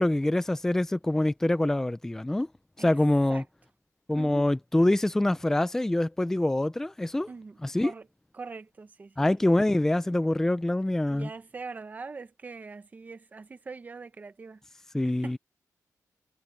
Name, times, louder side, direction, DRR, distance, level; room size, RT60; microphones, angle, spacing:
voice 1, 0.0-2.5 2.8-3.4 4.1-7.3 7.6-7.9 9.2-11.3 14.9-15.4, left 1 dB, 5° left, 0.5 m, -25 dB
voice 2, 4.2-4.5 7.3-8.1 8.3-9.3 11.1-14.6 15.2-15.4, right 4 dB, 25° right, 0.9 m, -42 dB
wide cardioid pair, 175°, 6 cm